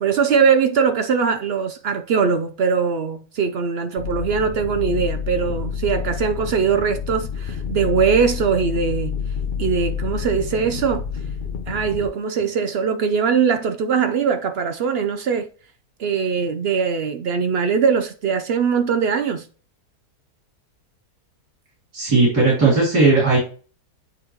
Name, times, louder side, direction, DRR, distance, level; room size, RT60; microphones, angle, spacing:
voice 1, 0.0-9.2 9.6-11.1 11.7-15.5 16.0-19.5, right 6 dB, 70° right, 0.5 m, -21 dB
sound 1, 4.0-12.1, left 7 dB, 50° left, 0.6 m, -28 dB
voice 2, 21.9-23.4, right 3 dB, 90° right, 3.4 m, -16 dB
9.3 x 3.8 x 3.0 m
omnidirectional pair, 1.7 m